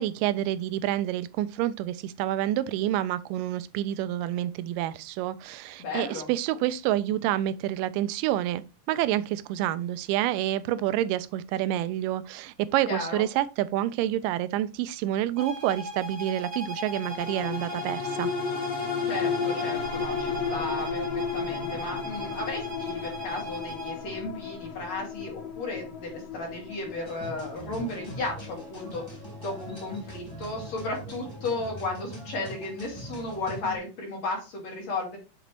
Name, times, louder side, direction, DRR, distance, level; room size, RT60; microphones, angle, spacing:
voice 1, 0.0-18.3, right 13 dB, 90° right, 2.2 m, -28 dB
voice 2, 5.8-6.3 12.9-13.2 19.0-21.0 21.3-29.0 29.4-35.2, left 2 dB, 55° left, 3.6 m, -34 dB
sound 1, 15.4-24.1, equal, 45° right, 3.3 m, -38 dB
sound 2, 16.9-31.6 32.0-32.1, left 5 dB, 85° left, 3.6 m, -34 dB
sound 3, 27.1-33.8, right 1 dB, 10° left, 2.2 m, -42 dB
7.4 x 4.0 x 4.4 m
omnidirectional pair, 3.8 m